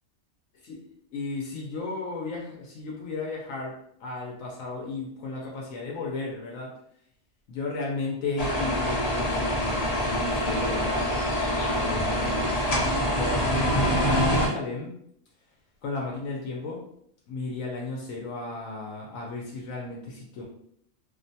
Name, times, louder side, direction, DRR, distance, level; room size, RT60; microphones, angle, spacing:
voice 1, 1.1-6.7 7.5-11.1 11.5-12.7 13.0-14.9 15.8-16.8 17.3-20.4, left 3 dB, 85° left, -2 dB, 1.0 m, -34 dB
sound 1, 8.4-14.5, equal, 45° left, 0.5 m, -25 dB
2.6 x 2.1 x 2.6 m, 0.72 s
omnidirectional pair, 1.3 m